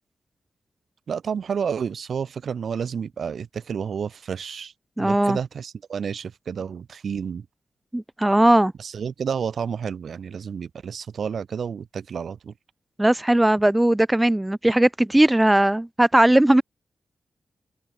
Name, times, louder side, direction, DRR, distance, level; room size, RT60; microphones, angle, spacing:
voice 1, 1.1-4.7 5.0-7.5 8.8-12.5, right 7 dB, 60° right, 6.4 m, -30 dB
voice 2, 5.0-5.4 7.9-8.7 13.0-16.6, right 1 dB, 10° right, 2.7 m, -18 dB
wide cardioid pair, 165°, 0 cm